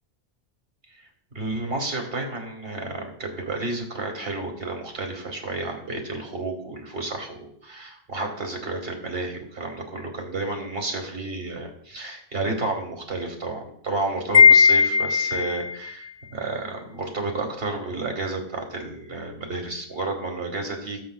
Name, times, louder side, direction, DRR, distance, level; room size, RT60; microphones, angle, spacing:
voice 1, 1.3-21.0, right 2 dB, 65° right, 3 dB, 2.2 m, -31 dB
Wind chime, 14.3-15.7, left 5 dB, 80° left, 1.5 m, -16 dB
20.0 x 7.3 x 2.4 m, 0.66 s
omnidirectional pair, 1.1 m